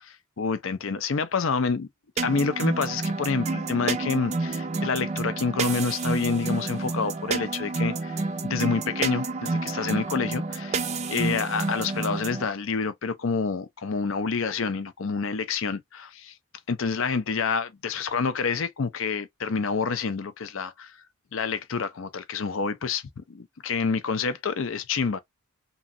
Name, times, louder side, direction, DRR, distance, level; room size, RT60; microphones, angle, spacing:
voice 1, 0.4-1.9 2.2-10.8 11.1-16.3 16.7-20.9 21.3-25.2, left 5 dB, 65° left, 0.5 m, -28 dB
sound 1, 2.2-12.5, right 3 dB, 30° right, 0.4 m, -29 dB
3.0 x 2.7 x 2.5 m
head